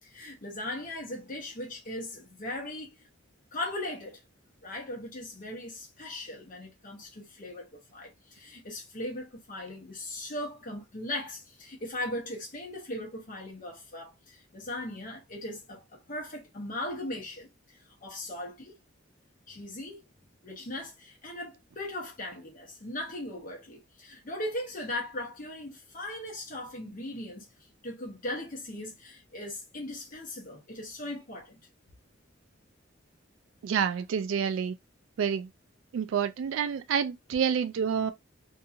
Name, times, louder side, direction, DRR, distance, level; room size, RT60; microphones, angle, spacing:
voice 1, 0.0-3.1 3.5-4.2 4.6-18.7 19.5-20.1 20.4-31.6, left 1 dB, 40° left, 0.8 m, -39 dB
voice 2, 33.6-34.8 35.2-35.5 35.9-38.1, right 7 dB, 70° right, 0.3 m, -28 dB
2.7 x 2.6 x 2.4 m
head